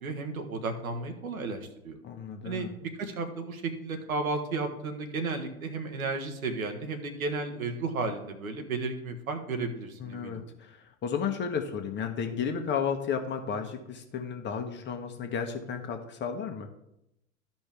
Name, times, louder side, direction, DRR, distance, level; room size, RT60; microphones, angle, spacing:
voice 1, 0.0-2.0 2.4-10.4, right 3 dB, 80° right, 6 dB, 1.3 m, -33 dB
voice 2, 2.0-2.7 10.0-16.7, left 6 dB, 25° left, 5 dB, 1.1 m, -33 dB
12.5 x 5.3 x 3.5 m, 0.83 s
hypercardioid pair, 95°, 42 cm